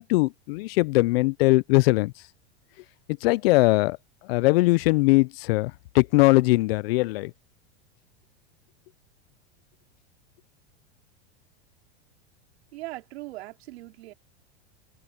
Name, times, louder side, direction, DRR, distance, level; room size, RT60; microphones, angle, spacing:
voice 1, 0.0-2.1 3.2-4.0 4.3-7.3, left 22 dB, 65° left, 0.5 m, -21 dB
voice 2, 12.7-14.1, right 18 dB, 75° right, 4.3 m, -39 dB
open air
supercardioid pair, 135°, 33 cm